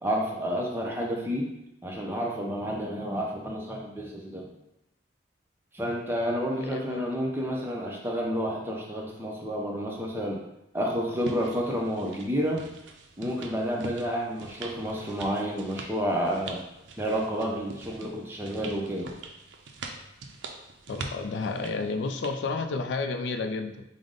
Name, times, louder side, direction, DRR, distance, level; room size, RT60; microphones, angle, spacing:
voice 1, 0.0-1.5 1.8-4.5 5.7-10.4 10.7-12.6 13.2-16.6 17.0-19.1, equal, 10° right, -1 dB, 0.5 m, -30 dB
voice 2, 6.5-7.0 20.9-23.8, left 3 dB, 70° left, 6 dB, 0.3 m, -31 dB
sound 1, 11.2-22.4, right 4 dB, 70° right, 0.4 m, -44 dB
5.0 x 2.0 x 3.8 m, 0.87 s
head